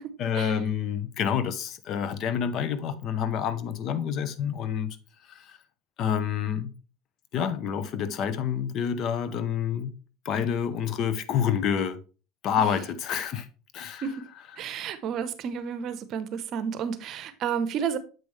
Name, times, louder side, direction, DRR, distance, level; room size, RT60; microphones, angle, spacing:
voice 1, 0.2-5.0 5.3-5.6 6.0-6.7 7.3-9.9 10.2-12.0 12.4-13.5 13.7-14.1, left 8 dB, 50° left, 0.8 m, -28 dB
voice 2, 14.6-18.0, right 7 dB, 50° right, 0.9 m, -31 dB
7.7 x 5.3 x 3.2 m
supercardioid pair, 115°, 0 cm